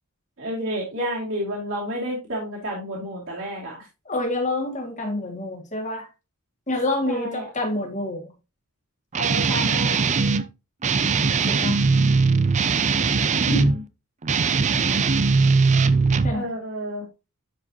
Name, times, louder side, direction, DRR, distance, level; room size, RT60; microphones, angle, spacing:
voice 1, 0.4-3.8 7.1-7.5 9.2-10.4 13.3-13.8 16.3-17.0, equal, 60° right, 2.6 m, -31 dB
voice 2, 4.1-6.1 6.7-8.3 11.5-11.8 13.5-13.6 16.2-16.5, left 1 dB, 35° left, 2.4 m, -27 dB
Guitar, 9.1-10.4 10.8-13.8 14.2-16.4, right 4 dB, 30° right, 0.5 m, -20 dB
10.5 x 4.9 x 2.9 m
head